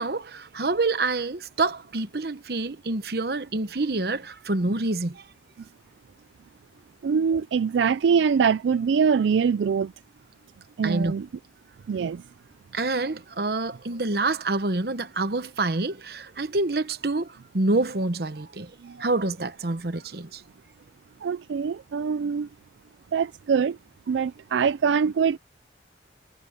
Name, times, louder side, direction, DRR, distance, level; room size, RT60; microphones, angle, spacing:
voice 1, 0.0-5.2 10.8-11.1 12.7-18.7 19.0-20.4, right 2 dB, 55° right, 1.0 m, -27 dB
voice 2, 7.0-9.9 10.8-11.3 11.9-12.2 18.8-18.9 21.2-22.5 23.1-23.8 24.1-25.4, right 6 dB, 85° right, 0.4 m, -23 dB
head